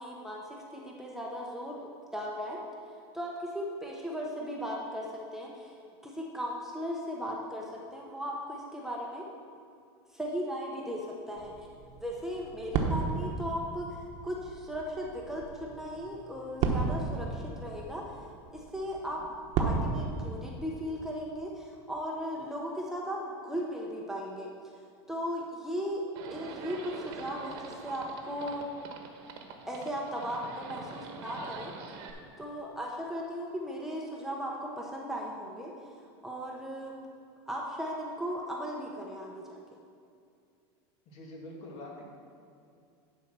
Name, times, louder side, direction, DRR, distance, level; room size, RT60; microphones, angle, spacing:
voice 1, 0.0-2.6 3.1-5.1 5.3-5.7 6.0-9.2 10.1-11.7 12.0-14.0 14.2-18.0 18.5-19.2 19.6-24.5 25.1-26.0 26.3-28.7 29.7-31.7 32.4-35.7 36.2-36.9 37.5-39.6, equal, 5° right, -2 dB, 0.9 m, -37 dB
sound 1, 11.4-20.4, right 4 dB, 50° right, 1.1 m, -34 dB
Livestock farm animals working animals, 26.2-32.1, right 5 dB, 70° right, 1.2 m, -45 dB
voice 2, 41.1-42.0, left 1 dB, 50° left, -1 dB, 2.3 m, -44 dB
11.5 x 4.7 x 6.1 m, 2.4 s
supercardioid pair, 135°, 14 cm